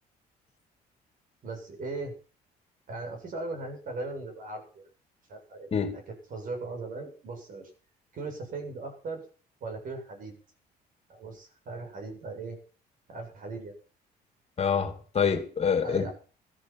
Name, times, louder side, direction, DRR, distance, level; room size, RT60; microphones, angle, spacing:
voice 1, 1.4-2.1 2.9-4.9 5.3-7.7 8.1-9.2 9.6-10.4 11.1-12.6 13.1-13.8 15.8-16.1, right 3 dB, 55° right, 7.3 m, -38 dB
voice 2, 14.6-16.1, left 6 dB, 35° left, 2.6 m, -26 dB
14.5 x 14.0 x 6.1 m
cardioid pair, 110°, 17 cm